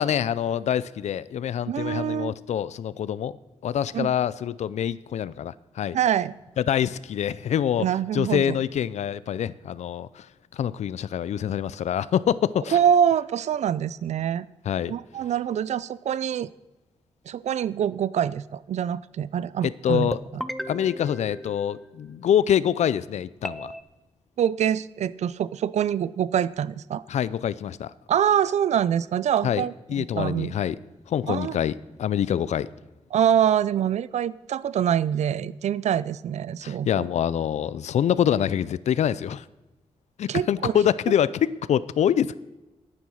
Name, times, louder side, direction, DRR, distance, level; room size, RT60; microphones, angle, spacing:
voice 1, 0.0-3.3 3.6-6.0 6.6-7.9 8.1-10.3 10.5-12.8 14.7-14.9 19.6-20.2 20.7-23.7 27.1-27.9 29.4-29.6 29.9-30.8 31.1-32.7 36.6-39.4 40.2-42.3, left 9 dB, 80° left, 18 dB, 0.5 m, -25 dB
voice 2, 1.7-2.3 3.9-4.1 5.9-6.3 7.8-8.6 12.7-14.5 14.9-16.5 17.3-20.4 24.4-27.0 28.1-30.5 31.3-31.6 33.1-36.9 40.3-40.7, right 9 dB, 80° right, 18 dB, 0.5 m, -25 dB
sound 1, 20.1-22.2 23.4-23.8, equal, ahead, 0.4 m, -36 dB
10.5 x 9.5 x 6.3 m, 1.1 s
wide cardioid pair, 160°, 12 cm